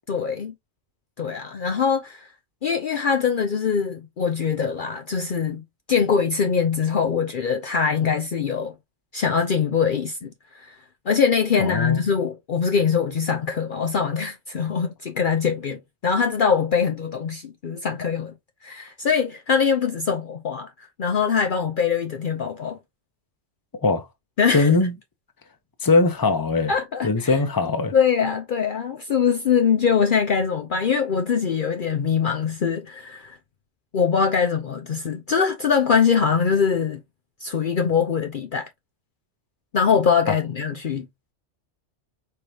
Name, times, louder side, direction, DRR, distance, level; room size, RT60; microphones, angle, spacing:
voice 1, 0.1-0.5 1.2-2.3 2.6-8.7 9.1-10.8 11.1-18.3 18.6-20.7 21.0-22.8 24.4-24.8 26.7-27.4 27.9-33.4 33.9-37.0 37.4-38.7 39.7-41.1, left 6 dB, 55° left, 0.7 m, -23 dB
voice 2, 11.6-12.0 23.8-24.0 24.5-24.9 25.8-26.7 27.0-27.9 40.3-40.4, left 3 dB, 20° left, 0.8 m, -20 dB
4.8 x 3.5 x 2.8 m
omnidirectional pair, 1.2 m